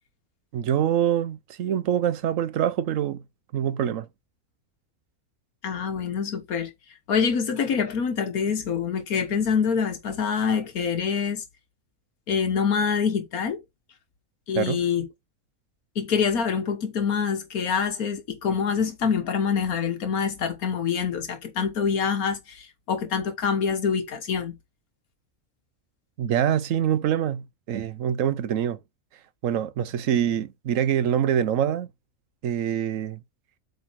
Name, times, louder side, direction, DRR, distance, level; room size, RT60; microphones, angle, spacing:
voice 1, 0.5-3.2 3.5-4.1 14.5-14.8 26.2-28.8 29.4-31.9 32.4-33.2, right 9 dB, 70° right, 1.1 m, -25 dB
voice 2, 5.6-6.7 7.1-11.4 12.3-13.6 14.5-15.1 16.0-24.6, left 6 dB, 90° left, 1.7 m, -25 dB
8.4 x 4.1 x 4.5 m
omnidirectional pair, 1.5 m